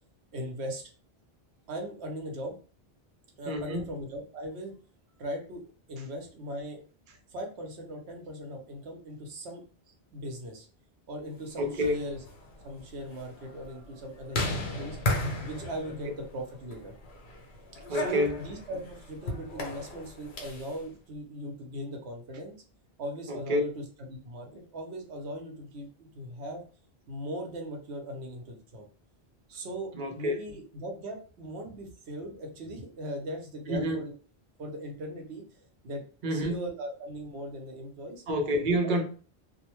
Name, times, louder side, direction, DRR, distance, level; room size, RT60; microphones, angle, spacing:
voice 1, 0.3-0.8 1.7-2.6 3.4-4.7 5.2-6.8 7.3-9.6 10.1-10.7 11.1-12.2 12.6-14.4 14.8-15.0 15.4-16.9 17.9-22.6 23.0-26.6 27.1-28.9 29.5-34.1 34.6-38.2 38.8-38.9, right 1 dB, 90° right, 1.0 m, -39 dB
voice 2, 3.5-3.9 11.6-12.1 17.9-18.4 23.3-23.7 29.9-30.4 33.7-34.0 36.2-36.6 38.3-39.0, equal, 55° right, 0.7 m, -28 dB
sound 1, 11.7-20.8, left 1 dB, 80° left, 1.0 m, -36 dB
2.6 x 2.1 x 2.9 m
omnidirectional pair, 1.1 m